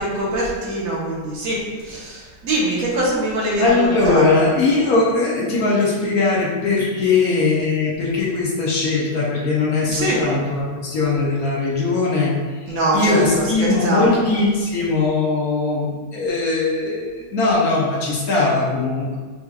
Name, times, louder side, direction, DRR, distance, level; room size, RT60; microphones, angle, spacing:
voice 1, 0.0-4.2 9.9-10.2 12.7-14.2, right 1 dB, 55° right, -5 dB, 1.3 m, -23 dB
voice 2, 3.6-12.3 12.6-19.2, left 3 dB, 65° left, -4 dB, 1.1 m, -20 dB
5.4 x 3.1 x 2.3 m, 1.4 s
omnidirectional pair, 1.9 m